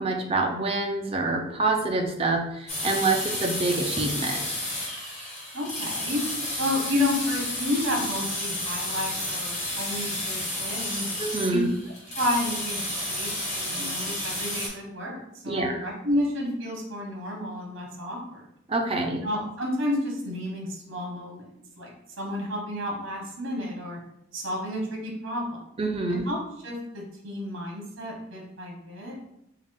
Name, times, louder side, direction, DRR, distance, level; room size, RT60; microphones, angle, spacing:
voice 1, 0.0-4.4 11.2-11.7 15.5-15.8 18.7-19.2 25.8-26.3, right 3 dB, 30° right, 3 dB, 0.4 m, -26 dB
sound 1, 2.7-14.7, left 1 dB, 35° left, 1.2 m, -31 dB
voice 2, 5.5-6.2 6.6-11.1 11.5-11.6 12.2-12.8 13.1-18.4 19.2-21.4 21.8-21.9 22.2-24.0 24.3-25.6 26.1-26.4 26.6-29.2, left 1 dB, 75° right, 0 dB, 1.0 m, -31 dB
3.6 x 2.4 x 3.6 m, 0.78 s
head